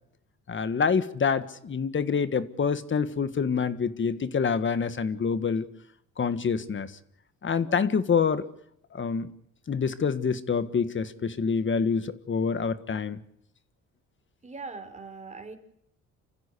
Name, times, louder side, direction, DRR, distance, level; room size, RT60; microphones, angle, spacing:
voice 1, 0.5-5.7 6.2-6.9 7.4-8.4 8.9-9.3 9.7-13.2, left 6 dB, 40° left, 13 dB, 1.6 m, -26 dB
voice 2, 14.4-15.6, right 4 dB, 25° right, 6 dB, 4.2 m, -41 dB
27.5 x 15.0 x 8.4 m, 0.74 s
cardioid pair, 90°, 30 cm